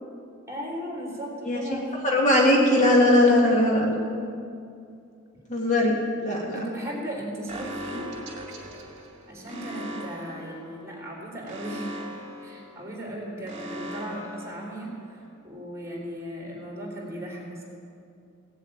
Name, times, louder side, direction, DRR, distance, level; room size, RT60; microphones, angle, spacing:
voice 1, 0.5-2.0 6.5-8.1 9.3-11.9 12.4-17.6, equal, 15° right, -3 dB, 3.6 m, -36 dB
voice 2, 2.0-4.0 5.5-6.6, left 1 dB, 35° left, -2 dB, 1.8 m, -20 dB
Alarm, 7.5-15.2, equal, 30° right, 2.3 m, -39 dB
17.5 x 7.5 x 8.7 m, 2.4 s
head